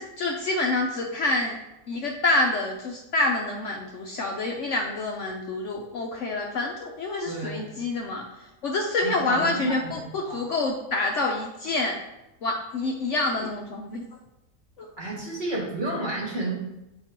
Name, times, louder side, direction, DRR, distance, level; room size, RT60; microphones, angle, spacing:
voice 1, 0.0-1.6 1.9-8.3 8.6-12.0 12.4-14.0 14.8-14.9, left 2 dB, 60° left, 1 dB, 0.9 m, -27 dB
voice 2, 7.2-7.8 9.0-10.4 15.0-16.5, right 2 dB, 30° right, -5 dB, 1.6 m, -31 dB
8.0 x 4.7 x 2.9 m, 0.92 s
omnidirectional pair, 1.6 m